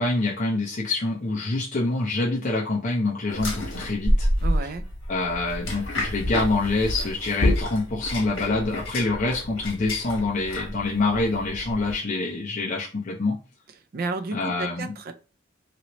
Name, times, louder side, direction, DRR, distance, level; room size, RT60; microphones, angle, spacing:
voice 1, 0.0-4.3 5.1-13.4 14.3-14.9, left 2 dB, 40° left, -3 dB, 0.6 m, -26 dB
sound 1, 3.3-11.9, left 1 dB, 80° left, 1.2 m, -28 dB
voice 2, 4.4-4.8 13.9-15.1, right 3 dB, 50° right, 8 dB, 0.4 m, -31 dB
3.0 x 3.0 x 2.9 m, 0.34 s
head